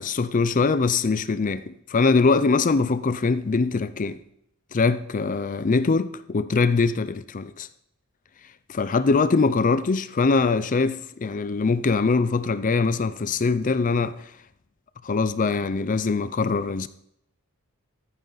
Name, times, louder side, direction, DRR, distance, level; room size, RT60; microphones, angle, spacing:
voice 1, 0.0-4.2 4.7-7.7 8.7-14.3 15.0-16.9, left 4 dB, 35° left, 0.4 m, -22 dB
14.5 x 9.9 x 4.0 m
head